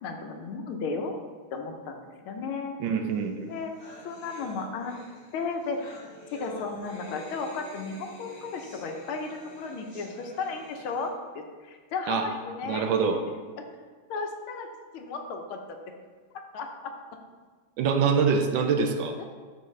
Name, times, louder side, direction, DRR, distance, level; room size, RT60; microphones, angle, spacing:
voice 1, 0.0-1.2 1.5-2.8 3.4-3.7 4.0-5.0 5.3-6.0 6.3-13.1 13.6-13.7 14.1-14.7 14.9-15.8 16.5-16.9 19.2-19.3, left 4 dB, 90° left, 4 dB, 1.7 m, -34 dB
voice 2, 2.8-3.5 12.1-12.3 12.7-13.2 17.8-19.2, right 5 dB, 75° right, 6 dB, 1.3 m, -25 dB
sound 1, 3.2-3.3 3.5-11.1, left 1 dB, 35° left, 1.5 m, -48 dB
12.0 x 4.2 x 3.2 m, 1.5 s
omnidirectional pair, 2.3 m